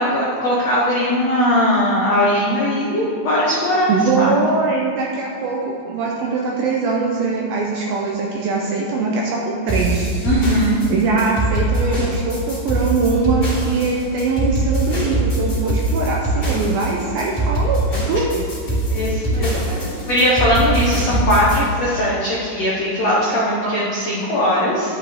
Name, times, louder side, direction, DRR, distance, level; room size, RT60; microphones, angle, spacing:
voice 1, 0.0-4.3 10.2-10.8 18.9-19.5 20.0-25.0, equal, 85° left, -7 dB, 1.4 m, -19 dB
voice 2, 3.9-5.6 5.9-10.1 10.9-17.8 18.1-18.5 19.7-19.8 23.6-23.7, right 4 dB, 80° right, -2 dB, 2.2 m, -21 dB
sound 1, 9.7-21.6, right 1 dB, 25° left, 2.1 m, -22 dB
11.0 x 8.3 x 3.6 m, 2.4 s
omnidirectional pair, 5.0 m